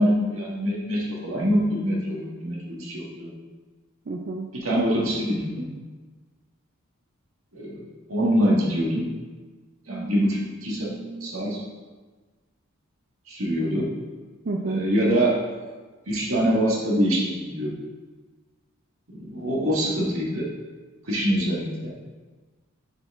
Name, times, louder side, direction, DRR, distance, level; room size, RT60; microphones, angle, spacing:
voice 1, 0.0-3.3 4.5-5.7 7.5-7.8 8.1-9.1 9.9-10.9 11.2-11.6 13.3-13.8 14.6-15.4 16.1-17.7 19.1-20.4 21.1-21.9, equal, 75° right, -3 dB, 1.5 m, -24 dB
voice 2, 4.1-4.5 9.9-10.2 10.7-11.3 14.5-14.8, right 3 dB, 45° right, 1 dB, 0.5 m, -31 dB
6.8 x 4.7 x 3.5 m, 1.3 s
head